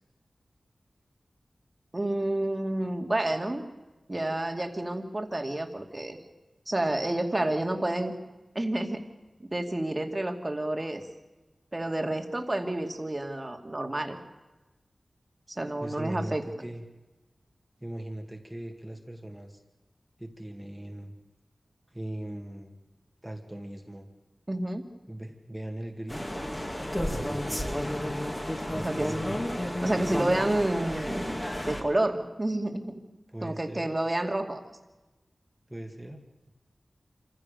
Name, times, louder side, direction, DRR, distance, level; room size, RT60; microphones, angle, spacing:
voice 1, 1.9-3.7 4.1-6.2 6.7-8.1 8.5-9.0 9.4-11.0 11.7-14.2 15.5-16.4 24.5-24.9 28.8-29.1 29.8-31.4 31.7-33.0 33.4-34.6, right 1 dB, 30° right, 4 dB, 2.4 m, -29 dB
voice 2, 15.8-16.8 17.8-19.6 20.2-21.1 21.9-22.8 23.2-24.1 25.1-26.5 27.1-27.7 28.7-29.4 33.3-33.9 35.7-36.5, right 1 dB, 10° right, 4 dB, 2.3 m, -39 dB
sound 1, 26.1-31.8, left 1 dB, 20° left, 2.8 m, -32 dB
26.5 x 15.5 x 6.8 m, 1.1 s
wide cardioid pair, 65°, 0 cm